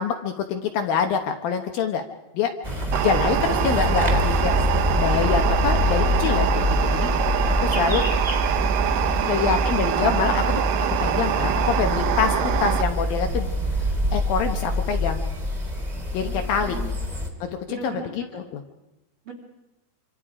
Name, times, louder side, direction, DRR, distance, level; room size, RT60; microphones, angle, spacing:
voice 1, 0.0-2.1 2.3-2.5 3.0-4.6 5.0-7.1 7.6-8.0 9.2-10.5 11.0-13.5 14.1-15.2 16.1-16.8 17.4-18.6, left 7 dB, 70° left, 6 dB, 2.4 m, -25 dB
sound 1, 2.6-17.3, equal, 15° right, 1.5 m, -25 dB
sound 2, 2.9-12.8, right 11 dB, 70° right, 2.2 m, -25 dB
voice 2, 7.7-9.5 16.2-16.9 17.7-18.3 19.2-19.3, right 4 dB, 40° right, 1 dB, 2.3 m, -40 dB
26.5 x 26.0 x 4.9 m, 0.99 s
omnidirectional pair, 5.1 m